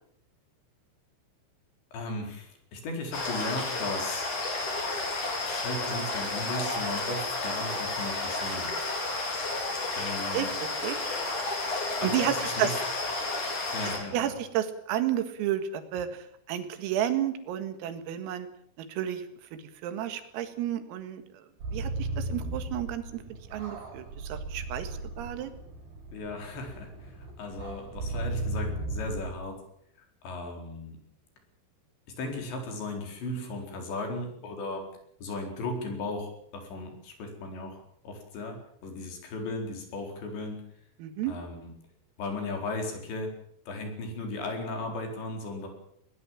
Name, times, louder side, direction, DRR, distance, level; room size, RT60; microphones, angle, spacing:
voice 1, 1.9-4.3 5.4-8.7 10.0-10.6 12.0-12.8 13.7-14.4 26.1-29.6 30.2-31.0 32.1-34.9 35.2-37.8 38.0-40.7 41.2-41.7 42.2-43.3 43.7-45.7, left 2 dB, 60° left, 4 dB, 6.4 m, -36 dB
sound 1, 3.1-14.0, left 2 dB, 40° left, 5.8 m, -32 dB
voice 2, 12.0-12.7 14.1-18.5 18.9-19.2 19.8-21.4 21.7-23.0 23.5-25.5 41.0-41.3, right 11 dB, 85° right, 9 dB, 4.5 m, -31 dB
sound 2, 21.6-29.4, right 2 dB, 45° right, 7.2 m, -36 dB
21.5 x 20.0 x 7.5 m, 0.66 s
omnidirectional pair, 6.0 m